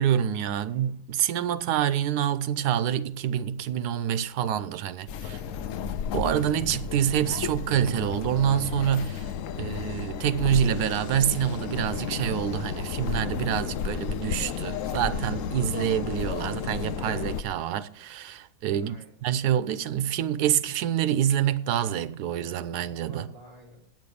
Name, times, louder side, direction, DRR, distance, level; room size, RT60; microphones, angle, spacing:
voice 1, 0.0-5.4 6.1-23.3, right 10 dB, 85° right, 1.2 m, -27 dB
sound 1, 5.1-17.4, left 8 dB, 70° left, 0.9 m, -32 dB
voice 2, 5.2-5.9 18.7-19.1 23.0-23.9, right 1 dB, 25° right, 3.8 m, -50 dB
9.0 x 6.1 x 8.5 m
omnidirectional pair, 1.6 m